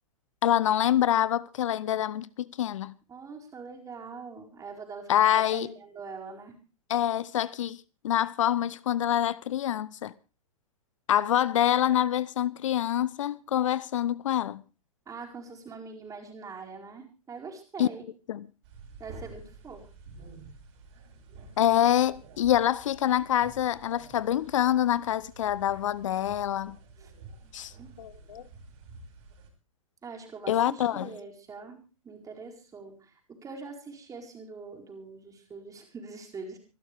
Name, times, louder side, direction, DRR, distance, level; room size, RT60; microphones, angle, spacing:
voice 1, 0.4-2.3 2.6-2.9 5.1-5.7 6.9-10.1 11.1-14.6 17.8-17.9 18.3-18.4 21.6-26.8 27.5-27.7 28.0-28.4 30.5-31.1, left 11 dB, 65° left, 0.7 m, -26 dB
voice 2, 3.1-6.6 15.1-18.0 19.0-19.9 27.0-27.1 27.4-27.9 30.0-36.6, right 4 dB, 20° right, 4.6 m, -43 dB
sound 1, 18.6-29.5, right 3 dB, 50° right, 6.1 m, -50 dB
26.0 x 11.5 x 3.5 m
figure-of-eight pair, 105°, 18 cm